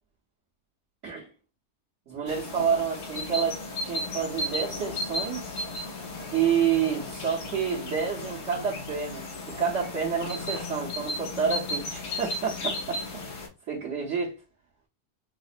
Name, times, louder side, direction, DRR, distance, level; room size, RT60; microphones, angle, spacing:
voice 1, 2.1-5.7 6.3-13.0 13.3-14.4, right 7 dB, 55° right, 1.2 m, -29 dB
sound 1, 2.3-13.5, left 1 dB, 90° left, 1.5 m, -35 dB
5.7 x 2.0 x 2.4 m
omnidirectional pair, 1.7 m